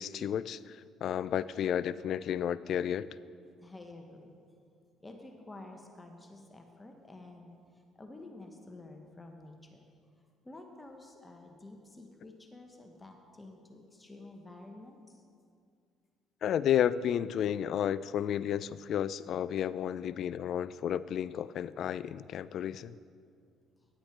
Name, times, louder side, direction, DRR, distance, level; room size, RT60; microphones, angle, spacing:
voice 1, 0.0-3.1 16.4-23.0, left 9 dB, 60° left, 17 dB, 0.3 m, -32 dB
voice 2, 3.6-4.3 5.0-7.5 8.0-9.8 10.4-15.2, left 2 dB, 20° left, 3 dB, 1.2 m, -50 dB
10.5 x 8.7 x 4.5 m, 2.3 s
hypercardioid pair, 55°, 0 cm